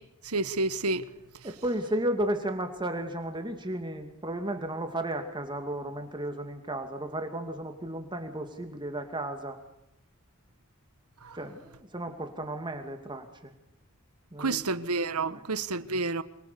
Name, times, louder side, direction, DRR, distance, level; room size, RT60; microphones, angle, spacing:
voice 1, 0.3-1.0 14.4-16.2, right 3 dB, 90° right, 1.5 m, -29 dB
voice 2, 1.4-9.6 11.3-13.5 14.3-14.6 15.3-15.4, right 1 dB, 20° right, 2.5 m, -34 dB
28.0 x 27.5 x 7.0 m
head